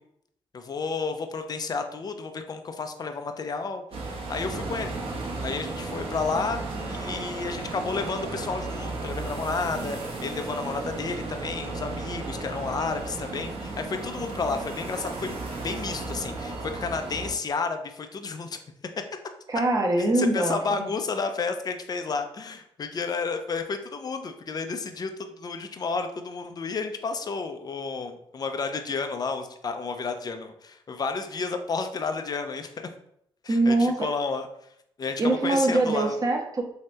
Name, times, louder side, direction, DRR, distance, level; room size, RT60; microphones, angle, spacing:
voice 1, 0.5-4.9 5.4-18.6 20.0-32.9 33.4-34.5 35.0-36.2, left 4 dB, 40° left, 6 dB, 0.5 m, -31 dB
sound 1, 3.9-17.3, right 3 dB, 60° right, 1.0 m, -34 dB
voice 2, 19.5-20.9 33.5-34.1 35.2-36.6, right 2 dB, 35° right, 1 dB, 0.8 m, -23 dB
3.2 x 2.8 x 3.1 m, 0.72 s
supercardioid pair, 60°, 11 cm